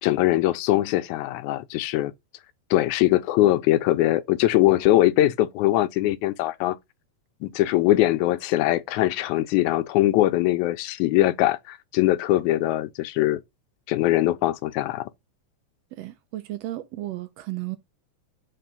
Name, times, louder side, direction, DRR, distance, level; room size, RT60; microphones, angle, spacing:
voice 1, 0.0-2.1 2.7-6.8 7.4-13.4 13.9-15.1, left 15 dB, 90° left, 2.1 m, -22 dB
voice 2, 15.9-17.8, right 16 dB, 80° right, 1.6 m, -34 dB
9.0 x 3.4 x 5.2 m
omnidirectional pair, 3.3 m